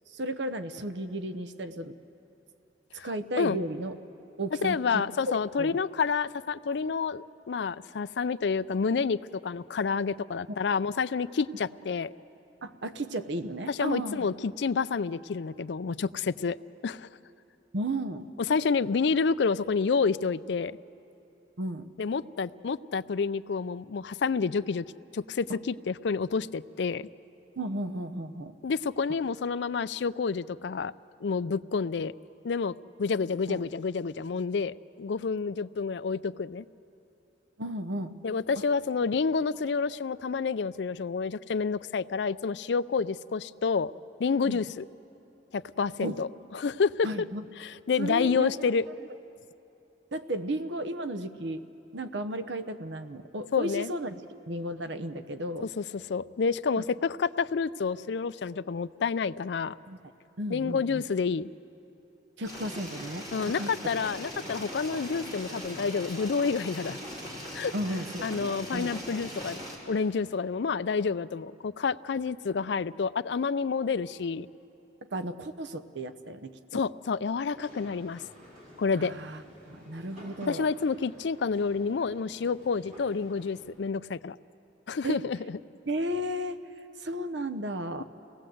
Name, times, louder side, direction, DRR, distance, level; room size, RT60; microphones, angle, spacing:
voice 1, 0.1-1.9 3.0-3.9 4.4-5.0 5.6-5.8 12.6-14.3 17.7-18.3 21.6-21.9 27.6-28.5 33.5-33.6 37.6-38.1 44.4-44.6 46.0-46.2 47.0-47.5 48.0-48.7 50.1-51.6 51.9-54.2 54.5-55.7 59.9-60.0 60.4-61.0 62.4-63.3 63.6-63.7 67.7-68.9 75.0-76.8 78.9-80.7 85.0-85.2 85.9-86.6 87.0-88.0, right 1 dB, 75° right, 11 dB, 0.9 m, -34 dB
voice 2, 4.6-12.1 13.7-16.6 16.8-17.1 18.5-20.8 22.0-24.8 25.1-27.1 28.6-30.9 31.2-32.1 32.4-36.7 38.2-43.9 44.2-44.9 45.5-47.1 47.6-48.8 53.5-53.9 55.6-55.8 56.1-59.7 60.5-61.5 63.3-67.0 67.5-67.7 68.2-69.6 69.9-74.5 76.7-78.2 78.8-79.1 80.4-84.4 84.9-85.6, left 5 dB, 70° left, 15 dB, 0.4 m, -29 dB
sound 1, 62.4-69.8, equal, 20° right, 4.1 m, -40 dB
sound 2, 77.4-83.6, equal, 45° right, 5.5 m, -52 dB
28.0 x 18.5 x 7.8 m, 2.8 s
head